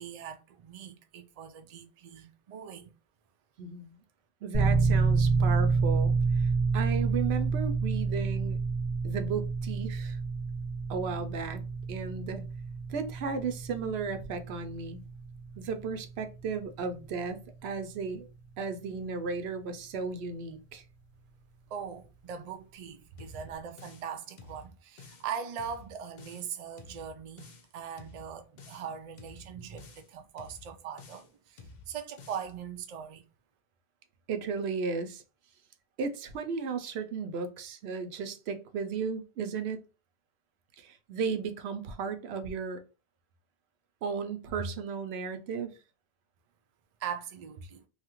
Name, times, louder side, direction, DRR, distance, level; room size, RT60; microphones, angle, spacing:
voice 1, 0.0-2.9 21.7-33.2 47.0-47.8, right 7 dB, 55° right, 0.4 m, -41 dB
voice 2, 3.6-4.0 4.4-8.6 9.0-10.2 10.9-11.6 11.9-12.5 12.9-15.0 15.6-18.3 18.6-20.8 34.3-35.2 36.0-39.8 40.8-42.8 44.0-45.8, right 5 dB, 85° right, 0.8 m, -35 dB
sound 1, 4.5-21.3, right 4 dB, 5° left, 0.9 m, -30 dB
sound 2, 23.2-24.1 24.4-25.3 25.6-26.5 26.8-27.7 28.0-28.9 29.2-30.1 30.4-31.3 31.6-32.5, left 3 dB, 50° left, 0.6 m, -51 dB
2.7 x 2.4 x 2.9 m
omnidirectional pair, 1.1 m